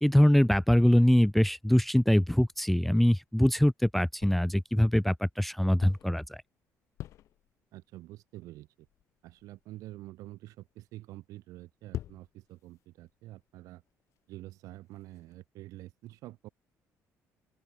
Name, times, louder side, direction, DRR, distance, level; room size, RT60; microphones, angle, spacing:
voice 1, 0.0-6.4, left 1 dB, ahead, 0.5 m, -23 dB
sound 1, 1.3-3.8 4.2-4.8 5.5-6.5 6.7-7.8 8.4-8.5 8.8-15.4, left 13 dB, 60° left, 4.2 m, -47 dB
voice 2, 7.7-8.9 9.2-13.8 14.3-16.5, right 16 dB, 80° right, 3.9 m, -47 dB
open air
cardioid pair, 175°, 6 cm